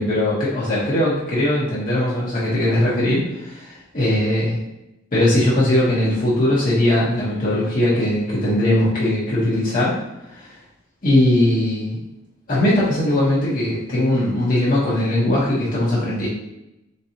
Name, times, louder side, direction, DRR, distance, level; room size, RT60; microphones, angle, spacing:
voice 1, 0.0-4.6 5.1-10.0 10.3-10.6 11.0-12.0 12.5-16.3, left 1 dB, 45° left, -8 dB, 1.1 m, -20 dB
4.2 x 3.8 x 2.8 m, 0.88 s
head